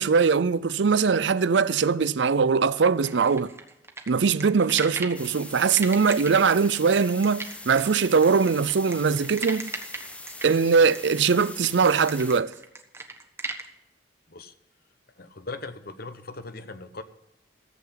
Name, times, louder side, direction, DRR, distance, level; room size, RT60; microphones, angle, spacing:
voice 1, 0.0-3.5 4.1-9.7 10.4-12.5, right 5 dB, 75° right, 0.5 m, -21 dB
sound 1, 3.0-5.2 5.7-13.7, right 3 dB, 15° right, 1.2 m, -37 dB
sound 2, 5.1-12.4, left 2 dB, 5° left, 0.6 m, -42 dB
voice 2, 15.2-17.0, left 3 dB, 55° left, 1.0 m, -39 dB
14.5 x 8.0 x 5.7 m
head